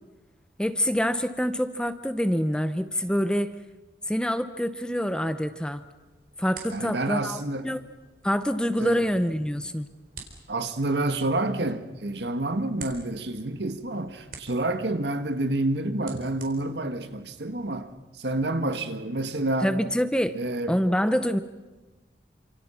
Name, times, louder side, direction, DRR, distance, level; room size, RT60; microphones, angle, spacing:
voice 1, 0.6-3.5 4.1-5.8 6.4-7.9 8.2-9.9 19.6-20.4 20.7-21.4, equal, 5° left, 11 dB, 0.9 m, -26 dB
sound 1, 5.7-17.8, right 5 dB, 50° right, 4.3 m, -50 dB
voice 2, 6.7-7.7 8.8-9.1 10.5-19.7 20.3-20.8, right 2 dB, 80° right, 8 dB, 1.7 m, -28 dB
29.0 x 26.5 x 5.8 m, 1.2 s
head